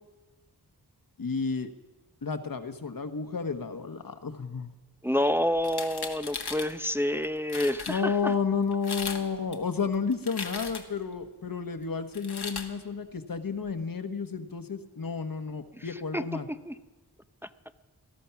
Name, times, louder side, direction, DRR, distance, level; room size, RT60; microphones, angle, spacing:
voice 1, 1.2-1.7 2.2-4.7 7.9-16.5, left 5 dB, 55° left, 9 dB, 1.2 m, -31 dB
voice 2, 5.0-8.3 16.1-16.7, left 1 dB, 5° right, 11 dB, 0.5 m, -28 dB
sound 1, 5.6-6.7 7.2-7.3 7.5-8.0 8.7-9.2 9.5-11.0 12.1-12.7, left 4 dB, 75° left, 1.5 m, -37 dB
18.5 x 13.5 x 5.9 m, 1.2 s
wide cardioid pair, 65°, 40 cm